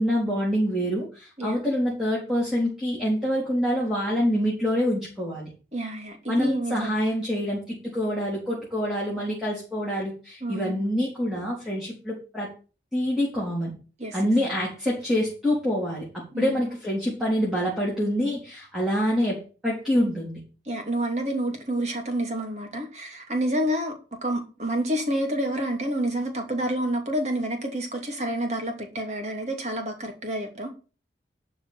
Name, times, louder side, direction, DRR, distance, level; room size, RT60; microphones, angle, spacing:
voice 1, 0.0-5.5 6.3-12.5 12.9-13.7 14.1-20.4, equal, 5° right, -6 dB, 3.7 m, -26 dB
voice 2, 5.7-6.9 10.4-10.8 14.0-14.2 16.3-16.6 20.7-23.9 24.2-30.7, right 1 dB, 40° right, 3 dB, 2.9 m, -28 dB
12.0 x 5.0 x 7.6 m, 0.35 s
head